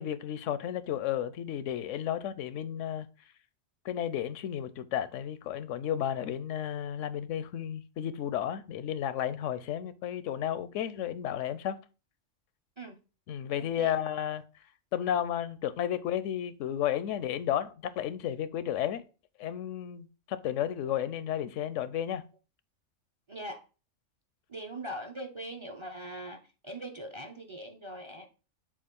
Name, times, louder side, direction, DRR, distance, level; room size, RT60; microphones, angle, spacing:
voice 1, 0.0-3.1 3.8-11.8 13.3-14.4 14.9-19.0 19.4-22.2, left 10 dB, 80° left, 0.9 m, -33 dB
voice 2, 13.6-14.1 23.3-23.6 24.5-26.4 26.6-28.3, right 1 dB, 35° right, 0.5 m, -41 dB
7.3 x 2.5 x 5.2 m
omnidirectional pair, 1.3 m